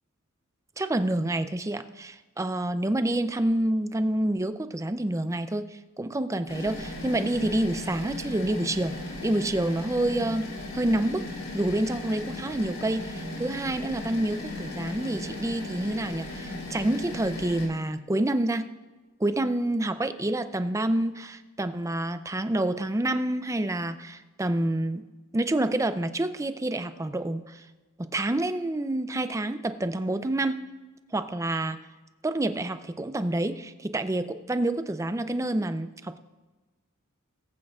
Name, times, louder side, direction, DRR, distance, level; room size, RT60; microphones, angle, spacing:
voice 1, 0.8-8.9 9.2-11.3 11.5-18.7 19.2-25.0 25.3-27.6 28.1-30.6 31.1-31.8 32.2-36.2, right 1 dB, 15° right, 10 dB, 0.4 m, -28 dB
sound 1, 6.5-17.7, left 2 dB, 65° left, 3.6 m, -37 dB
19.0 x 8.7 x 2.4 m, 1.2 s
head